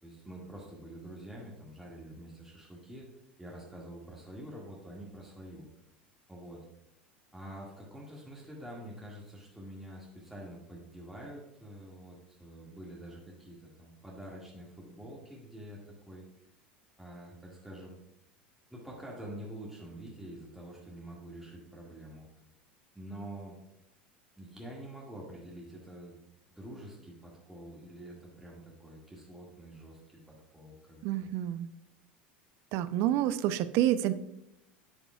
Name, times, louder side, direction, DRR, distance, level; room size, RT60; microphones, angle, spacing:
voice 1, 0.0-3.1 3.4-5.7 6.3-6.6 7.3-16.5 17.0-18.0 18.7-22.3 23.0-23.6 24.4-26.2 26.5-31.3, right 1 dB, ahead, -5 dB, 1.9 m, -47 dB
voice 2, 31.0-31.7 32.7-34.1, right 12 dB, 55° right, 14 dB, 0.5 m, -28 dB
8.8 x 7.8 x 2.3 m, 0.84 s
hypercardioid pair, 75°, 5 cm